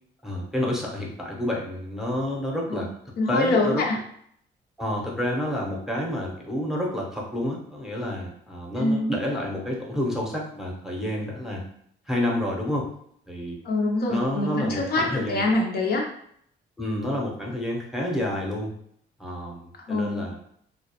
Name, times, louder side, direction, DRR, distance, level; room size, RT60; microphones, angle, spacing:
voice 1, 0.2-2.9 3.3-3.8 4.8-11.6 12.1-12.9 13.3-13.6 14.1-15.5 16.8-18.7 19.2-20.4, left 1 dB, ahead, -2 dB, 0.7 m, -29 dB
voice 2, 3.2-4.0 8.8-9.1 13.6-16.1 19.9-20.2, left 2 dB, 55° left, 0 dB, 0.4 m, -24 dB
2.3 x 2.0 x 2.8 m, 0.67 s
cardioid pair, 90°, 20 cm